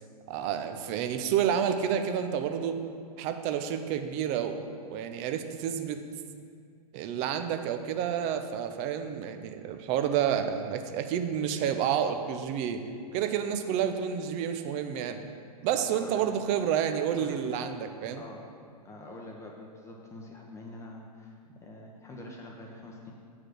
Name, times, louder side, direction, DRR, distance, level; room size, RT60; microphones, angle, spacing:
voice 1, 0.3-2.8 3.2-6.0 6.9-12.8 13.1-15.2 15.6-18.2, right 8 dB, 35° right, 8 dB, 0.6 m, -29 dB
voice 2, 15.9-16.2 17.2-17.4 18.2-18.4 18.8-21.4 21.6-23.1, left 2 dB, 15° left, -1 dB, 0.8 m, -45 dB
7.5 x 4.8 x 6.4 m, 2.2 s
figure-of-eight pair, 110°, 21 cm